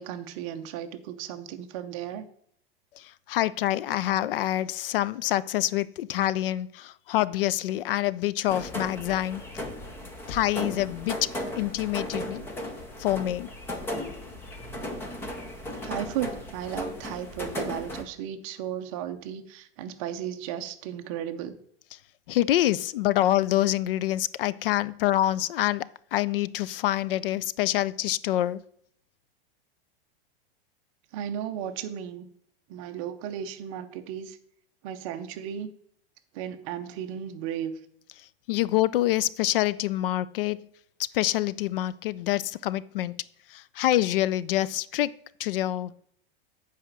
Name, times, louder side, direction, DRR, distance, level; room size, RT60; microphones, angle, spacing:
voice 1, 0.0-2.2 14.6-15.0 15.8-21.5 31.1-32.3 32.7-34.4 34.8-35.7 36.3-37.7, right 10 dB, 35° right, 0.7 m, -35 dB
voice 2, 2.9-9.6 10.3-13.5 22.3-28.6 38.2-40.7 41.0-43.2 43.5-45.1 45.4-45.9, left 14 dB, 65° left, 0.5 m, -26 dB
sound 1, 8.5-18.0, left 1 dB, 10° left, 0.6 m, -36 dB
8.3 x 4.9 x 7.3 m
supercardioid pair, 175°, 30 cm